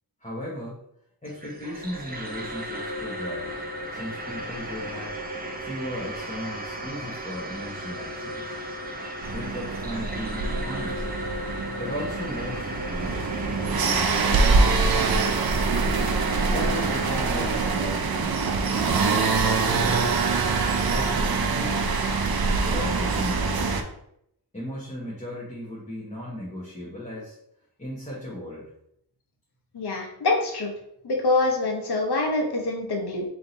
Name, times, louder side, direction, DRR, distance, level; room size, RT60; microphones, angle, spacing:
voice 1, 0.2-0.8 1.2-3.6 3.9-5.2 5.6-8.6 9.3-11.0 11.8-15.3 16.5-20.1 20.9-22.0 22.6-23.8 24.5-27.4 27.8-28.7, left 1 dB, 20° left, -7 dB, 1.1 m, -36 dB
sound 1, 1.3-18.2, right 1 dB, 25° right, 0.6 m, -35 dB
sound 2, 9.2-23.8, right 4 dB, 65° right, 0.5 m, -24 dB
voice 2, 29.7-30.7 31.0-33.2, left 2 dB, 80° left, 1 dB, 0.9 m, -25 dB
3.6 x 2.9 x 4.0 m, 0.75 s
wide cardioid pair, 110°, 39 cm